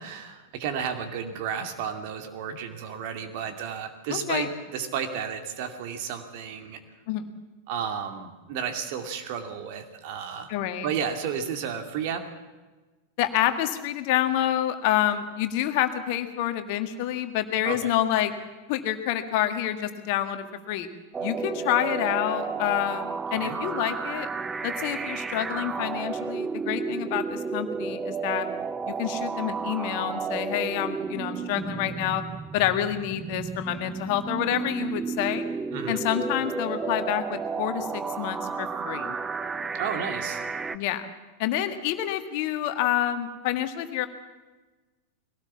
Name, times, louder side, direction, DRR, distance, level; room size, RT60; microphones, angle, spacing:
voice 1, 0.0-6.8 7.7-10.5 10.8-12.2 17.6-17.9 23.4-23.6 35.7-36.0 39.7-40.4, right 7 dB, 45° right, 6 dB, 2.4 m, -32 dB
voice 2, 4.1-4.5 7.1-7.3 10.5-10.9 13.2-18.3 18.7-20.9 21.2-24.3 24.6-28.5 28.9-32.2 32.5-35.5 35.9-39.1 40.7-41.0 41.4-44.1, left 12 dB, 45° left, 8 dB, 1.7 m, -28 dB
sound 1, 21.1-40.8, right 5 dB, 15° right, 0.8 m, -32 dB
21.5 x 18.0 x 7.3 m, 1.2 s
figure-of-eight pair, 90°, 0 cm